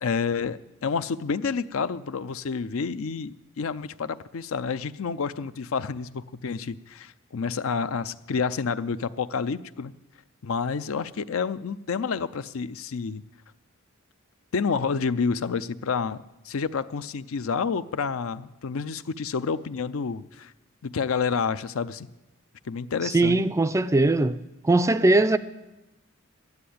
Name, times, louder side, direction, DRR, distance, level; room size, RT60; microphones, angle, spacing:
voice 1, 0.0-9.9 10.4-13.2 14.5-16.2 16.5-20.5 20.8-22.1 22.7-23.4, left 5 dB, 70° left, 0.5 m, -29 dB
voice 2, 23.1-24.4 24.7-25.4, right 2 dB, 15° right, 0.4 m, -20 dB
12.5 x 9.7 x 8.5 m
head